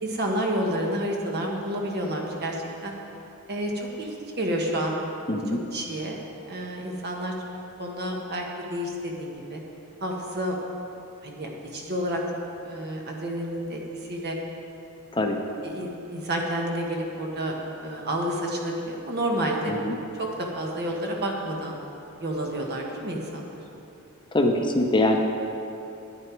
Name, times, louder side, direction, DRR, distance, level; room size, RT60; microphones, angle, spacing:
voice 1, 0.0-2.9 3.5-5.0 5.7-6.2 6.5-7.4 7.8-8.4 8.7-9.6 10.0-10.5 11.2-12.2 12.6-13.8 14.1-14.4 15.6-19.7 20.1-21.8 22.2-23.6, right 1 dB, 50° right, 0 dB, 1.3 m, -30 dB
voice 2, 5.3-5.6 15.1-15.4 19.7-19.9 24.3-25.2, left 1 dB, 20° left, 3 dB, 0.8 m, -23 dB
11.0 x 9.1 x 4.6 m, 2.8 s
head